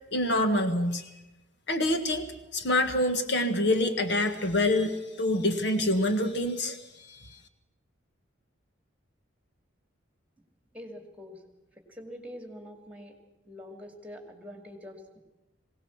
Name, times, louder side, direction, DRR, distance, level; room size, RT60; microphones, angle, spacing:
voice 1, 0.1-1.0 1.7-2.3 2.5-6.8 7.1-7.2, left 1 dB, 65° left, 7 dB, 1.6 m, -26 dB
voice 2, 10.7-11.4 11.9-13.1 13.5-15.2, equal, 5° right, 4 dB, 2.5 m, -44 dB
21.0 x 18.0 x 7.3 m, 0.98 s
head